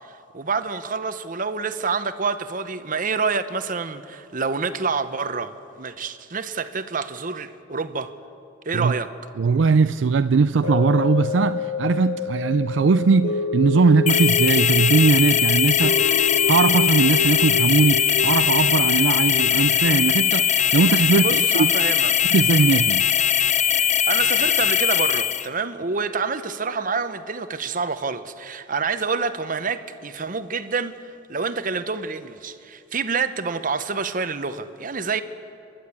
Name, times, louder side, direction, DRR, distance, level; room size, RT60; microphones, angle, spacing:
voice 1, 0.0-8.1 8.6-9.1 21.1-22.1 23.8-35.2, right 4 dB, 45° right, 0.9 m, -27 dB
voice 2, 9.4-16.2 16.5-21.7 22.3-23.1, right 4 dB, 90° right, 0.4 m, -20 dB
sound 1, 10.6-21.0 21.4-21.5, left 5 dB, 85° left, 2.0 m, -28 dB
sound 2, 14.1-25.5, left 8 dB, 40° left, 0.7 m, -20 dB
29.0 x 11.5 x 8.5 m
head